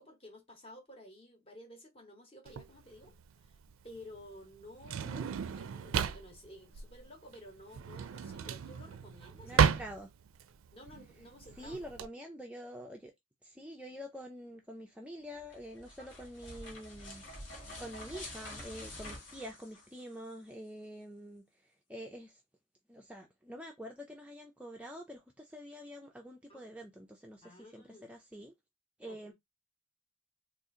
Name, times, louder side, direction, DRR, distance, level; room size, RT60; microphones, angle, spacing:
voice 1, 0.0-3.6 3.8-9.7 10.7-11.8 15.9-16.2 19.0-19.2 26.5-26.7 27.4-28.1 29.0-29.3, left 1 dB, 25° left, 0.8 m, -53 dB
Drawer open or close, 2.5-12.1, right 7 dB, 85° right, 0.4 m, -33 dB
voice 2, 9.4-10.1 11.6-13.1 13.4-21.4 21.9-22.4 22.9-28.5 29.0-29.3, equal, 5° right, 0.3 m, -46 dB
sound 1, 15.4-20.3, left 1 dB, 65° left, 1.4 m, -47 dB
2.7 x 2.4 x 3.7 m
head